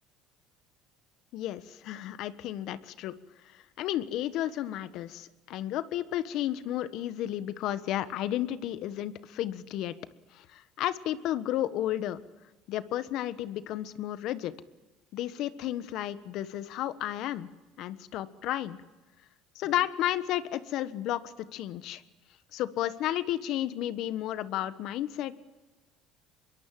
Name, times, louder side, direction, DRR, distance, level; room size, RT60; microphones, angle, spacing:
voice 1, 1.3-3.2 3.5-10.0 10.3-12.2 12.7-14.5 15.1-17.5 17.8-18.8 19.5-22.0 22.5-25.5, left 12 dB, 65° left, 13 dB, 1.3 m, -32 dB
25.0 x 22.0 x 7.7 m, 1.2 s
supercardioid pair, 100°, 0 cm